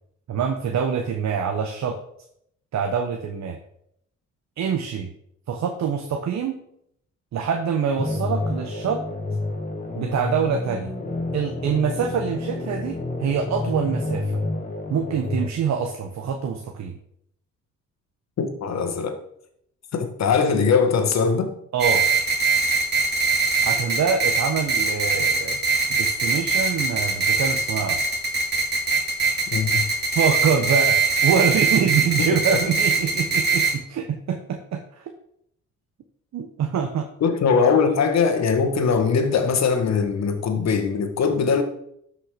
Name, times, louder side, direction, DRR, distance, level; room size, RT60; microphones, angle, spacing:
voice 1, 0.3-2.0 2.7-3.6 4.6-5.1 5.5-6.6 7.3-9.0 10.0-10.9 11.3-14.4 14.9-17.0 21.7-22.0 23.6-25.6 25.9-28.0 30.1-35.1 36.3-37.1, right 7 dB, 65° right, 5 dB, 1.2 m, -25 dB
sound 1, 8.0-15.5, left 2 dB, 25° left, 2.1 m, -29 dB
voice 2, 18.4-19.2 19.9-21.5 29.5-29.8 32.5-32.6 37.2-41.6, left 5 dB, 60° left, 7 dB, 1.7 m, -21 dB
sound 2, 21.8-33.7, right 4 dB, 35° right, 2.6 m, -22 dB
12.5 x 5.8 x 5.1 m, 0.73 s
cardioid pair, 90°, 30 cm